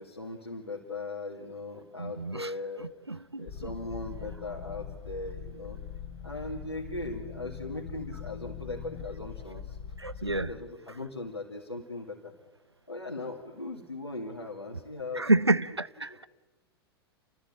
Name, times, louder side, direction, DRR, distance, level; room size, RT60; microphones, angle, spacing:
voice 1, 0.0-2.9 3.4-5.8 6.2-9.8 10.1-12.3 12.9-15.4 16.1-16.3, left 2 dB, 85° left, 2.4 m, -39 dB
voice 2, 2.0-2.5 2.8-3.7 10.0-10.5 15.1-16.3, right 2 dB, 90° right, 0.7 m, -29 dB
sound 1, 3.5-10.6, left 7 dB, 45° left, 1.6 m, -42 dB
29.5 x 14.0 x 8.5 m
figure-of-eight pair, 95°, 13 cm